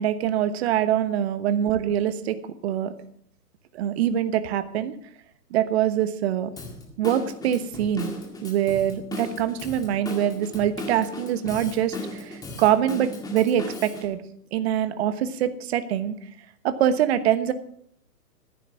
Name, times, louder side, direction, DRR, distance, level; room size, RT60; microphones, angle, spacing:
voice 1, 0.0-2.4 2.6-2.9 3.7-4.9 5.5-6.5 7.0-8.1 8.4-14.2 14.5-16.1 16.6-17.5, right 10 dB, 40° right, 12 dB, 1.2 m, -24 dB
Drum kit / Drum, 6.6-14.1, left 2 dB, 10° left, 2.0 m, -37 dB
14.5 x 10.0 x 5.9 m, 0.67 s
hypercardioid pair, 130°, 48 cm